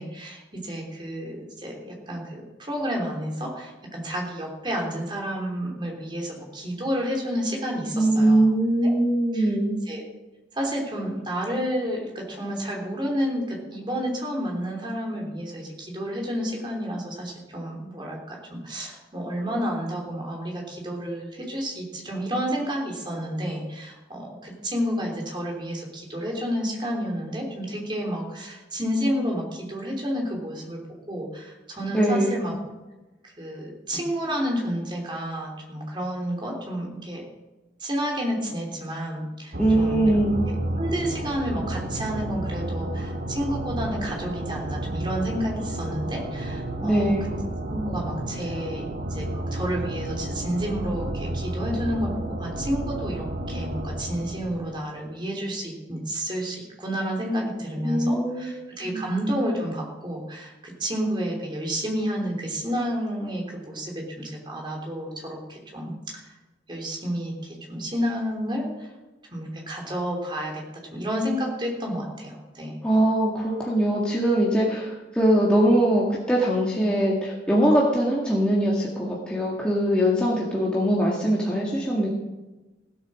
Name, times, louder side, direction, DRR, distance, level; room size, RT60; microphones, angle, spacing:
voice 1, 0.0-8.5 8.8-8.9 9.3-9.6 9.9-10.0 10.5-30.8 31.1-32.6 33.2-37.2 37.8-40.2 40.4-47.1 47.7-66.3 66.7-68.9 69.3-70.6 70.9-72.8, equal, 25° right, -1 dB, 3.4 m, -30 dB
voice 2, 7.9-9.8 31.9-32.4 39.6-40.5 46.8-47.3 57.8-59.0 72.8-82.1, right 1 dB, 5° left, -5 dB, 1.8 m, -22 dB
sound 1, 39.5-54.7, right 1 dB, 50° right, 1.1 m, -31 dB
16.5 x 8.4 x 6.3 m, 1.1 s
head